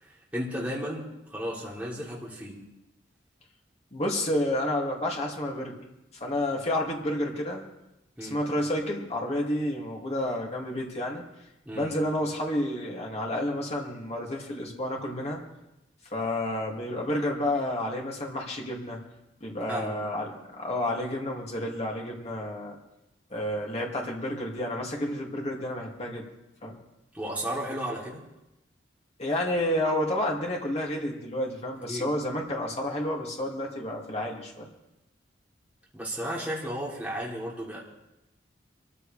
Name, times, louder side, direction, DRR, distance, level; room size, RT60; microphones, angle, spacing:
voice 1, 0.0-2.6 8.2-8.4 11.6-11.9 19.7-20.0 27.1-28.2 31.9-32.1 35.9-37.8, equal, 10° right, -6 dB, 3.2 m, -34 dB
voice 2, 3.9-5.8 6.2-7.6 8.2-11.2 11.7-15.4 16.1-19.0 19.4-22.8 23.3-26.2 26.6-26.8 29.2-34.7, left 1 dB, 35° left, -1 dB, 2.5 m, -30 dB
24.0 x 14.0 x 3.4 m, 0.92 s
head